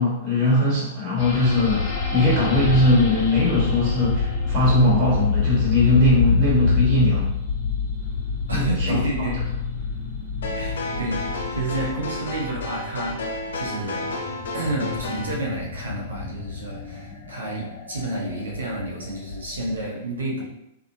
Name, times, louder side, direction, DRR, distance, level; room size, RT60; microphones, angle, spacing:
voice 1, 0.0-7.3 8.5-9.0, left 1 dB, 35° right, -7 dB, 1.3 m, -20 dB
sound 1, 1.2-19.9, left 5 dB, 45° left, 1.0 m, -27 dB
voice 2, 8.5-9.4 10.5-11.2 11.5-14.1 14.5-20.4, right 2 dB, 85° right, -2 dB, 0.8 m, -30 dB
sound 2, 10.4-15.3, left 2 dB, 70° left, 0.5 m, -32 dB
2.7 x 2.3 x 2.7 m, 0.81 s
hypercardioid pair, 110°, 0 cm